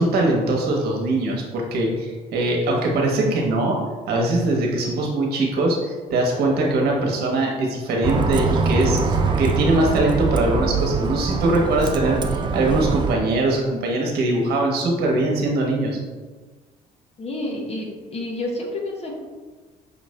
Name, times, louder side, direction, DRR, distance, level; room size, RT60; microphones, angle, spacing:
voice 1, 0.0-3.8 4.1-16.0, right 2 dB, 70° right, 0 dB, 1.1 m, -22 dB
Bus, 8.0-13.2, right 4 dB, 25° right, 0.4 m, -23 dB
voice 2, 17.2-19.1, left 1 dB, 35° left, 0 dB, 0.9 m, -29 dB
5.6 x 2.5 x 3.2 m, 1.3 s
cardioid pair, 110°, 17 cm